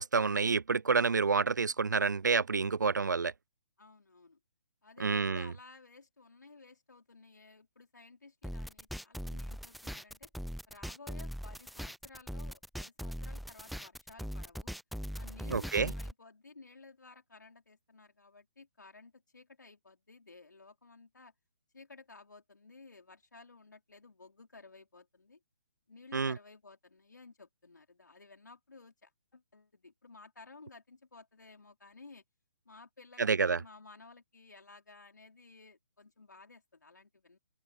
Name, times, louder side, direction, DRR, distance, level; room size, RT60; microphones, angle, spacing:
voice 1, 0.0-3.3 5.0-5.5 15.5-15.9 26.1-26.3 33.2-33.6, right 5 dB, 80° right, 0.5 m, -28 dB
voice 2, 3.8-4.4 4.8-10.3 10.7-14.7 15.2-21.3 21.7-25.4 25.9-32.2 32.6-37.4, left 3 dB, 80° left, 4.3 m, -55 dB
sound 1, 8.4-16.1, equal, ahead, 0.3 m, -40 dB
figure-of-eight pair, 135°, 10 cm